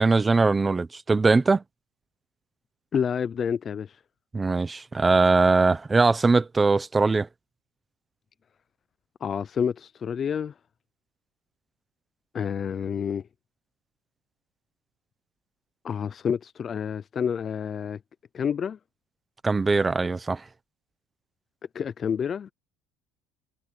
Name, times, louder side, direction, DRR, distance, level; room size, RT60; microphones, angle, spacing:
voice 1, 0.0-1.6 4.3-7.3 19.4-20.4, right 3 dB, 15° right, 0.9 m, -21 dB
voice 2, 2.9-4.0 9.2-10.5 12.3-13.2 15.8-18.0 18.3-18.8 21.7-22.5, left 7 dB, 25° left, 0.4 m, -28 dB
cardioid pair, 155°, 0 cm